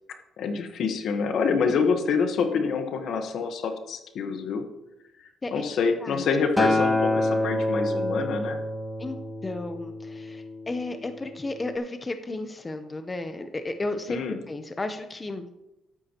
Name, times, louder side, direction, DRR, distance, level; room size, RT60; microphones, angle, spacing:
voice 1, 0.4-4.6 5.2-8.6 14.1-14.4, left 5 dB, 70° left, 6 dB, 1.2 m, -26 dB
Acoustic guitar, 6.6-10.9 11.7-11.8, left 1 dB, 5° left, 1.2 m, -27 dB
voice 2, 9.4-15.5, left 2 dB, 25° left, 8 dB, 0.8 m, -33 dB
12.5 x 9.9 x 3.0 m, 0.92 s
cardioid pair, 90°, 0 cm